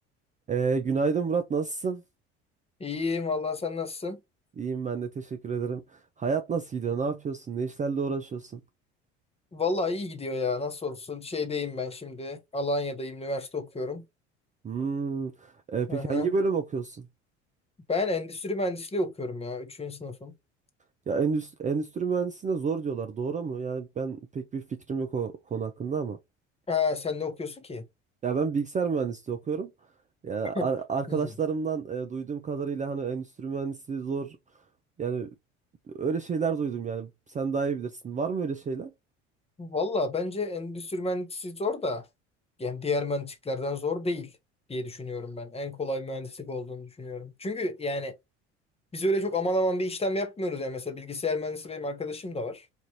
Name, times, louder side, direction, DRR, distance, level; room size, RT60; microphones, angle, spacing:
voice 1, 0.5-2.0 4.6-8.6 14.6-17.1 21.1-26.2 28.2-29.7 30.2-34.4 35.0-35.3 35.9-37.1 37.3-38.9, right 5 dB, 20° right, 0.5 m, -30 dB
voice 2, 2.8-4.2 9.5-14.0 15.9-16.3 17.9-20.3 26.7-27.8 30.5-30.7 31.1-31.3 39.6-42.0 42.6-44.3 44.7-48.1 48.9-52.7, left 2 dB, 15° left, 0.9 m, -31 dB
4.1 x 2.5 x 2.8 m
hypercardioid pair, 65°, 35 cm